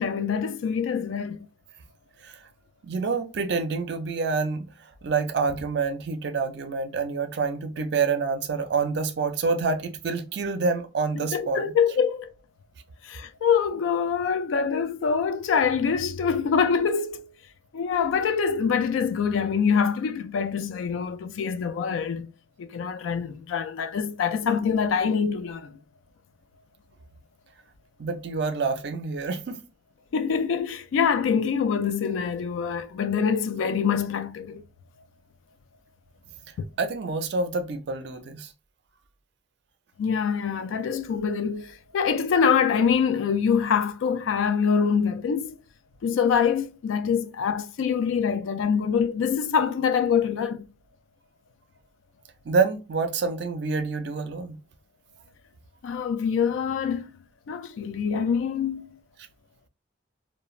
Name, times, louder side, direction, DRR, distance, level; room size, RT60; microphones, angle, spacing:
voice 1, 0.0-1.4 11.2-12.3 13.0-17.3 17.7-22.3 22.6-25.7 30.1-34.6 40.0-45.6 46.0-50.6 55.8-57.1 57.5-58.9, left 6 dB, 80° left, 0.3 m, -25 dB
voice 2, 2.8-4.7 5.0-11.7 28.0-29.6 36.8-38.5 52.5-54.6, right 4 dB, 60° right, 0.4 m, -27 dB
2.4 x 2.1 x 3.0 m
head